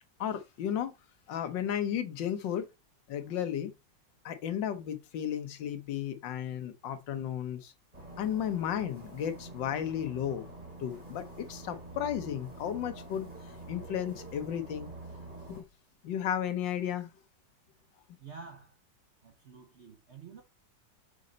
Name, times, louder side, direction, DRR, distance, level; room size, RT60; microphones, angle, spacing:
voice 1, 0.2-0.9 1.3-2.7 3.1-3.7 4.2-7.7 8.2-10.5 10.8-13.3 13.7-14.9 15.5-15.6 16.0-17.1, left 9 dB, 80° left, 1.6 m, -34 dB
sound 1, 7.9-15.6, right 2 dB, 25° right, 3.0 m, -46 dB
voice 2, 18.2-18.8 19.2-20.4, right 5 dB, 55° right, 0.7 m, -49 dB
6.4 x 4.2 x 3.9 m
omnidirectional pair, 2.0 m